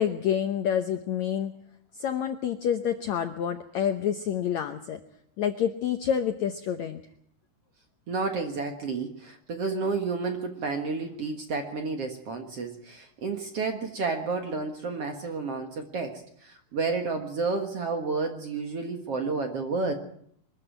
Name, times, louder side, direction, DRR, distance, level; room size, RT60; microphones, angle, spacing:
voice 1, 0.0-1.6 1.9-5.0 5.4-7.0, left 9 dB, 90° left, 8 dB, 1.6 m, -28 dB
voice 2, 8.1-19.9, right 4 dB, 55° right, 5 dB, 1.9 m, -31 dB
23.0 x 14.0 x 9.0 m, 0.67 s
omnidirectional pair, 4.7 m